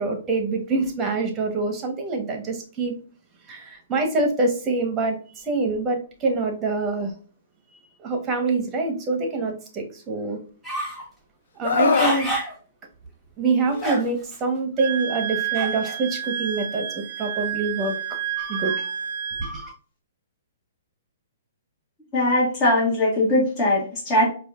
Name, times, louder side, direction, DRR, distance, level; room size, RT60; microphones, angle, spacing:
voice 1, 0.0-2.9 3.5-7.1 8.0-10.4 11.6-12.3 13.4-18.9 19.4-19.7, right 3 dB, 20° right, 1.0 m, -25 dB
sound 1, 10.6-11.1 11.6-12.5 13.1-13.2 13.7-14.3 15.5-16.0, right 1 dB, 5° left, 1.1 m, -28 dB
Screaming, 11.6-12.2 13.7-13.9, left 5 dB, 70° left, 0.4 m, -22 dB
Wind instrument woodwind instrument, 14.8-19.5, right 9 dB, 60° right, 0.4 m, -30 dB
voice 2, 22.1-24.3, left 1 dB, 25° left, 1.5 m, -20 dB
4.8 x 2.5 x 2.4 m
hypercardioid pair, 140°, 0 cm